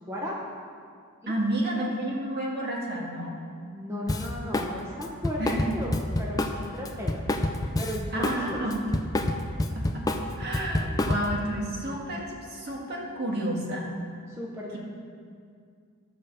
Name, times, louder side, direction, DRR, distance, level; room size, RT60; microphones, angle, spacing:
voice 1, 1.3-3.3 5.4-5.7 8.1-8.9 9.7-13.9, right 1 dB, 45° right, -2 dB, 1.7 m, -31 dB
voice 2, 3.7-5.4 5.7-7.3 7.8-8.6 14.4-14.8, left 1 dB, 10° right, -4 dB, 0.9 m, -35 dB
Drum kit, 4.1-4.7 5.0-8.4 8.7-11.4, left 1 dB, 15° left, 0.4 m, -28 dB
11.5 x 5.0 x 7.0 m, 2.2 s
head